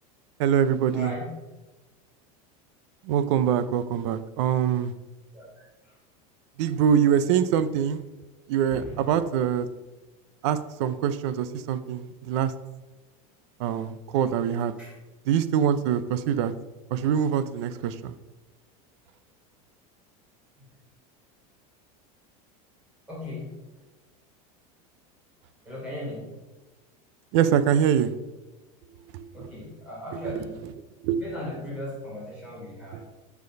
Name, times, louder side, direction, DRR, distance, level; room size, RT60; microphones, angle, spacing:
voice 1, 0.4-1.1 3.0-4.9 6.6-8.0 8.5-9.7 10.4-12.5 13.6-14.7 15.3-16.5 16.9-18.1 27.3-28.1 29.1-29.5 31.0-31.2, right 9 dB, 50° right, 13 dB, 0.6 m, -24 dB
voice 2, 0.9-1.3 5.3-5.9 8.7-8.9 14.8-14.9 23.1-23.5 25.6-26.3 29.3-30.6 31.1-33.0, left 1 dB, 5° right, -6 dB, 3.4 m, -37 dB
7.2 x 6.6 x 5.2 m, 1.1 s
supercardioid pair, 180°, 18 cm